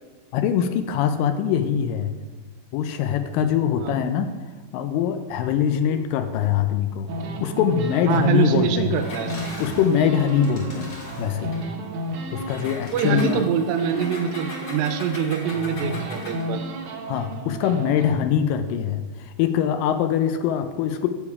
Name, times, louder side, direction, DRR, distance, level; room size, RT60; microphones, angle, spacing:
voice 1, 0.3-2.1 2.7-4.3 4.7-7.1 7.4-8.9 9.6-11.6 12.3-13.4 17.1-21.1, left 8 dB, 85° left, 9 dB, 2.2 m, -23 dB
sound 1, 7.1-12.7 13.0-15.1 15.4-18.1, right 1 dB, 70° right, 2.3 m, -33 dB
voice 2, 8.1-9.3 12.9-16.6, right 7 dB, 90° right, 7 dB, 2.4 m, -24 dB
Engine, 8.9-11.7 12.5-16.5, left 2 dB, 65° left, 0.9 m, -39 dB
7.1 x 6.9 x 4.7 m, 1.3 s
omnidirectional pair, 4.0 m